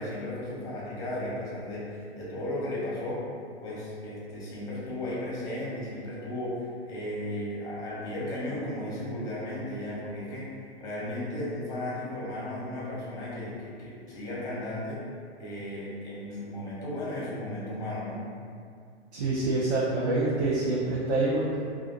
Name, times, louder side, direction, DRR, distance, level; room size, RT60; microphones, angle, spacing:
voice 1, 0.0-3.2 3.6-10.5 10.8-15.0 15.4-18.2, left 1 dB, 10° left, -7 dB, 0.9 m, -35 dB
voice 2, 19.1-21.5, right 2 dB, 70° right, -7 dB, 0.7 m, -26 dB
2.5 x 2.4 x 3.8 m, 2.3 s
hypercardioid pair, 135°, 33 cm